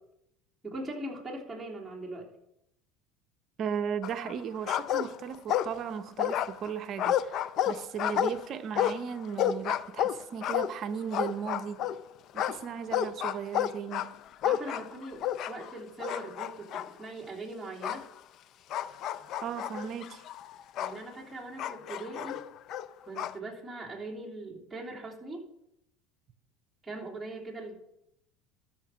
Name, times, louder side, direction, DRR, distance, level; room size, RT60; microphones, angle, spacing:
voice 1, 0.6-2.3 14.4-18.0 20.8-22.5 23.0-25.5 26.8-27.8, right 2 dB, 5° right, 3.2 m, -41 dB
voice 2, 3.6-11.8 12.3-14.2 19.4-20.2, right 7 dB, 45° right, 0.8 m, -36 dB
sound 1, 4.0-4.4 4.7-5.9 6.2-12.0 12.4-15.7 16.0-16.9 17.8-18.0 18.7-21.0 21.6-23.4, left 10 dB, 50° left, 0.5 m, -31 dB
13.0 x 5.8 x 5.7 m
supercardioid pair, 110°, 0 cm